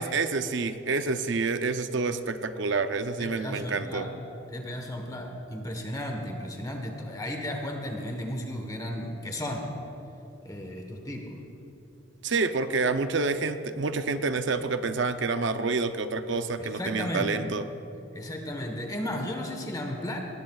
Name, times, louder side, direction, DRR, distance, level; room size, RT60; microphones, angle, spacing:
voice 1, 0.0-4.1 12.2-17.6, right 4 dB, 60° right, 9 dB, 0.6 m, -28 dB
voice 2, 3.2-4.1 4.5-9.7 10.4-11.3 16.6-17.4 18.1-20.2, left 1 dB, 20° left, 2 dB, 1.2 m, -34 dB
19.0 x 17.5 x 2.4 m, 2.9 s
head